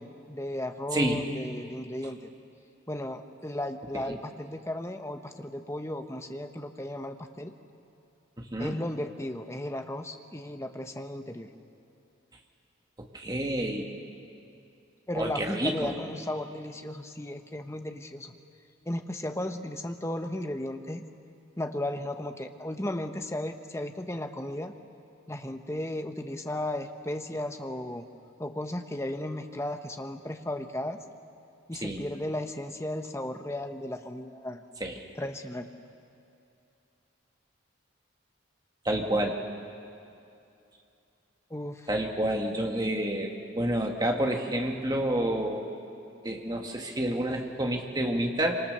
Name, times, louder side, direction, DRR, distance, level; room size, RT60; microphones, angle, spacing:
voice 1, 0.0-2.2 2.9-7.5 8.6-11.5 15.1-18.4 18.9-21.0 21.6-24.7 25.3-28.1 28.4-31.0 31.7-34.6 35.2-35.7 41.5-41.9, left 1 dB, 15° left, 6 dB, 1.0 m, -35 dB
voice 2, 0.9-1.3 3.9-4.2 8.4-8.8 13.1-13.9 15.1-15.9 31.8-32.0 34.8-35.0 38.9-39.4 41.9-45.6 46.2-48.6, right 1 dB, 20° right, 2 dB, 2.0 m, -29 dB
27.0 x 25.5 x 6.8 m, 2.6 s
head